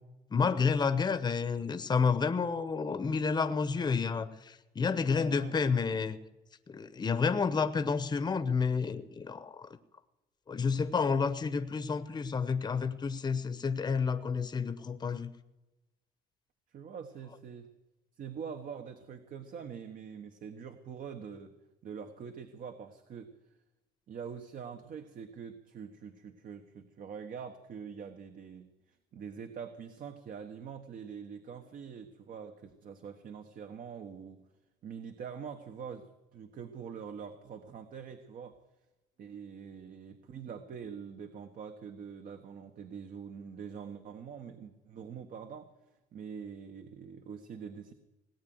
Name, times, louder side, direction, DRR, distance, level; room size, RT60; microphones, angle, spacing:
voice 1, 0.3-6.2 6.7-9.7 10.5-15.3, left 5 dB, 25° left, 10 dB, 1.0 m, -30 dB
voice 2, 5.1-5.6 16.7-17.7 18.2-21.5 21.8-23.3 24.1-34.4 34.8-38.6 39.2-45.7 46.1-47.9, right 7 dB, 55° right, 7 dB, 1.3 m, -44 dB
18.5 x 9.1 x 7.9 m, 1.0 s
cardioid pair, 110°, 17 cm